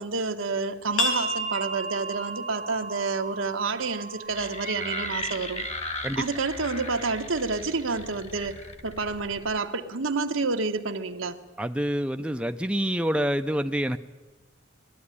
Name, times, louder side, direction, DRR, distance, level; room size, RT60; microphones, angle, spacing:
voice 1, 0.0-5.7 6.2-8.5 8.8-11.4, right 4 dB, 90° right, 5 dB, 1.4 m, -29 dB
sound 1, 1.0-6.4, equal, 85° left, 3.1 m, -33 dB
sound 2, 4.3-9.6, left 1 dB, 35° left, 1.5 m, -36 dB
voice 2, 11.6-14.0, equal, 5° right, 7 dB, 0.5 m, -27 dB
20.5 x 13.0 x 9.8 m, 1.3 s
head